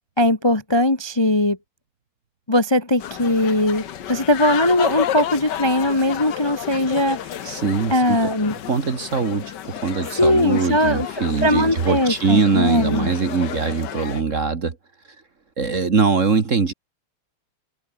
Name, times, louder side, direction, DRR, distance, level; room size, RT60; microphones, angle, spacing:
voice 1, 0.2-1.6 2.5-7.2 7.9-8.6 10.2-13.1, left 1 dB, 15° left, 1.1 m, -20 dB
sound 1, 3.0-14.2, left 10 dB, 60° left, 1.5 m, -31 dB
voice 2, 7.4-8.3 8.7-14.8 15.6-16.7, right 5 dB, 35° right, 1.8 m, -22 dB
omnidirectional pair, 2.4 m